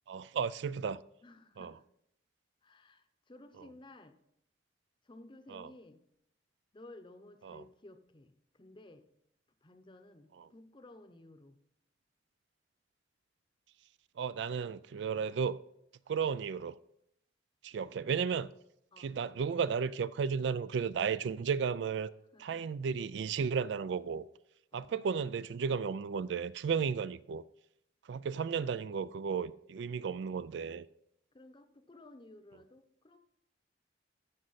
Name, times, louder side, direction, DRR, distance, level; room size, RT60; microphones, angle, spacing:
voice 1, 0.1-1.0 1.6-1.7 5.5-5.7 7.4-7.6 10.4-10.5 14.2-15.6 16.1-16.8 17.6-18.5 19.0-22.1 22.4-24.2 24.7-27.4 28.1-30.9, right 6 dB, 70° right, 0.3 m, -34 dB
voice 2, 1.2-1.8 2.6-4.2 5.0-6.0 6.7-9.1 9.6-11.6 17.9-18.0 18.9-19.2 22.3-22.7 24.7-24.9 31.3-33.2, left 2 dB, 25° left, 0.8 m, -55 dB
14.0 x 6.3 x 4.1 m
head